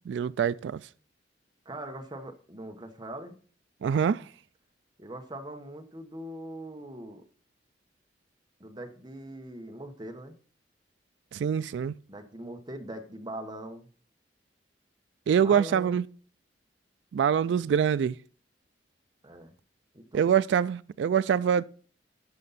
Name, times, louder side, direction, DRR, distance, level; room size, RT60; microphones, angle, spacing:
voice 1, 0.1-0.8 3.8-4.2 11.3-11.9 15.3-16.0 17.1-18.2 20.1-21.6, right 8 dB, 80° right, 0.3 m, -25 dB
voice 2, 1.6-3.4 5.0-7.2 8.6-10.3 12.1-13.9 15.4-16.0 19.2-19.5 19.9-20.3, right 1 dB, 25° right, 1.2 m, -41 dB
12.5 x 5.5 x 4.1 m
head